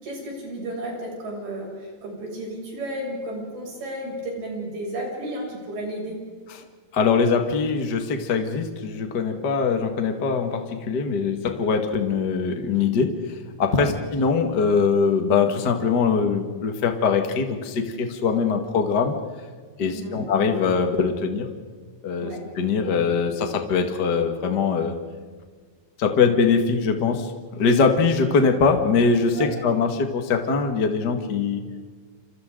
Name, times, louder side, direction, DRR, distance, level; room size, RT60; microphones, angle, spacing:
voice 1, 0.0-6.2 13.7-13.9 19.8-20.2 22.2-22.4 29.3-29.5, right 1 dB, 85° right, -2 dB, 8.8 m, -33 dB
voice 2, 6.9-19.1 19.8-21.5 22.0-25.0 26.0-31.6, left 5 dB, 40° left, 4 dB, 1.7 m, -22 dB
29.5 x 28.0 x 3.9 m, 1.5 s
omnidirectional pair, 4.3 m